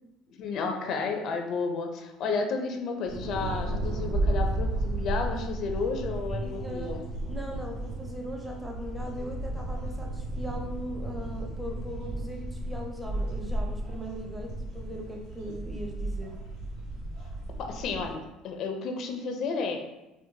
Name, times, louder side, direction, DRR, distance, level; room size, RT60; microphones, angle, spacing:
voice 1, 0.4-7.0 17.7-19.8, left 4 dB, 55° left, 4 dB, 0.4 m, -32 dB
sound 1, 3.1-18.1, right 1 dB, 75° right, 1.3 m, -33 dB
voice 2, 6.3-7.0 7.3-16.3, equal, 5° right, 0 dB, 0.6 m, -39 dB
4.5 x 2.1 x 2.7 m, 0.99 s
cardioid pair, 125°, 0 cm